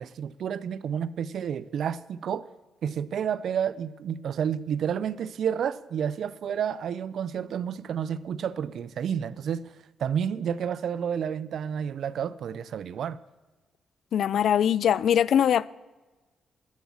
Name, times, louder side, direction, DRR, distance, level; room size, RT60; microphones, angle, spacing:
voice 1, 0.0-2.5 2.8-13.2, right 8 dB, 65° right, 0.5 m, -30 dB
voice 2, 14.1-15.7, left 9 dB, 65° left, 0.3 m, -22 dB
13.0 x 7.2 x 7.3 m
cardioid pair, 135°, 0 cm